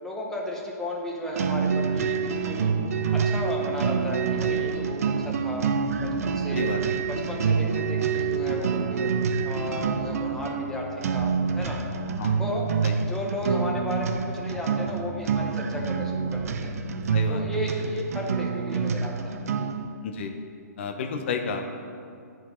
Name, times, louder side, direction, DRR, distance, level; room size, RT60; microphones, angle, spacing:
voice 1, 0.0-2.7 3.1-5.7 6.0-6.7 7.1-9.1 9.4-11.8 12.4-12.7 13.0-16.8 17.3-19.7, left 1 dB, 5° left, -2 dB, 0.9 m, -34 dB
sound 1, 1.3-19.9, right 6 dB, 55° right, 0.5 m, -27 dB
sound 2, 1.9-17.6, equal, 30° right, 1.4 m, -42 dB
voice 2, 17.1-17.4 20.0-20.4 20.8-21.7, left 5 dB, 45° left, 5 dB, 0.7 m, -31 dB
11.0 x 4.5 x 4.4 m, 2.4 s
hypercardioid pair, 160°, 9 cm